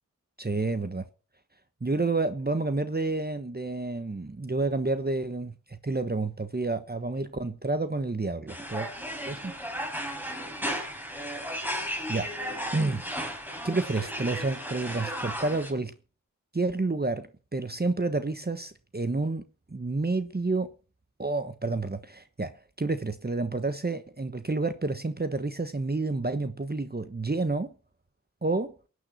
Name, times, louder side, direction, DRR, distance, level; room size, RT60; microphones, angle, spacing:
voice 1, 0.4-1.1 1.8-8.9 9.3-9.5 12.1-12.3 12.7-13.0 13.6-15.9 16.5-19.4 19.7-20.7 21.2-22.5 22.8-27.7 28.4-28.7, right 3 dB, 30° right, 1.2 m, -29 dB
sound 1, 8.5-15.7, equal, 5° right, 5.7 m, -35 dB
17.0 x 9.6 x 5.8 m
wide cardioid pair, 50°, 34 cm